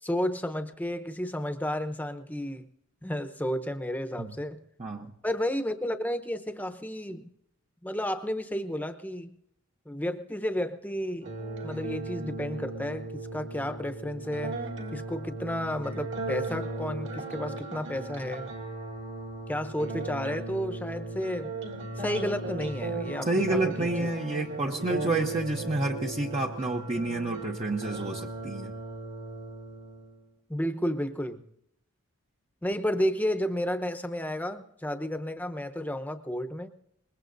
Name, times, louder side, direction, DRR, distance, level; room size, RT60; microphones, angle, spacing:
voice 1, 0.0-2.7 3.0-4.6 5.2-7.3 7.8-9.3 9.9-11.3 11.6-14.6 14.9-18.5 19.5-21.5 22.0-24.1 30.5-31.4 32.6-36.7, equal, 10° left, 8 dB, 0.9 m, -32 dB
voice 2, 4.8-5.1 23.3-28.7, right 2 dB, 30° right, 1 dB, 0.8 m, -29 dB
sound 1, 11.2-30.2, right 2 dB, 55° right, 2.4 m, -37 dB
24.5 x 21.0 x 2.6 m, 0.75 s
head